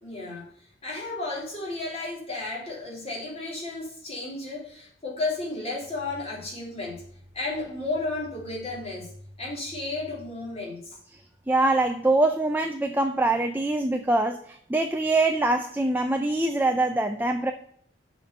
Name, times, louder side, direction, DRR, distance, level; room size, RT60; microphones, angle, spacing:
voice 1, 0.0-0.5 0.8-7.0 7.3-9.1 9.4-11.0, left 2 dB, 35° left, -4 dB, 3.2 m, -33 dB
voice 2, 11.5-17.5, right 2 dB, 10° right, 5 dB, 0.5 m, -24 dB
7.1 x 4.6 x 6.5 m, 0.63 s
head